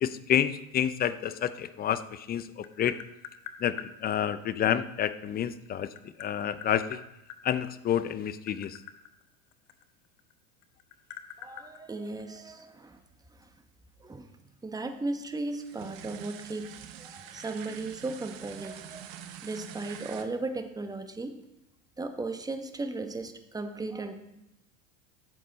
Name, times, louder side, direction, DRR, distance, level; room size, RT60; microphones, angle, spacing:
voice 1, 0.0-2.9 3.6-5.9 6.2-7.0 7.4-8.8, left 9 dB, 25° left, 14 dB, 0.5 m, -29 dB
Tap, 2.1-3.9 5.3-7.4 8.2-10.3 10.6-12.6, left 10 dB, 70° left, 1.0 m, -45 dB
voice 2, 11.4-13.0 13.3-13.5 14.0-14.3 14.6-19.1 19.4-21.4 22.0-24.1, right 2 dB, 10° right, 7 dB, 1.0 m, -36 dB
sound 1, 15.5-20.2, right 10 dB, 65° right, 1.0 m, -45 dB
12.5 x 7.4 x 4.0 m, 0.88 s
hypercardioid pair, 90°, 42 cm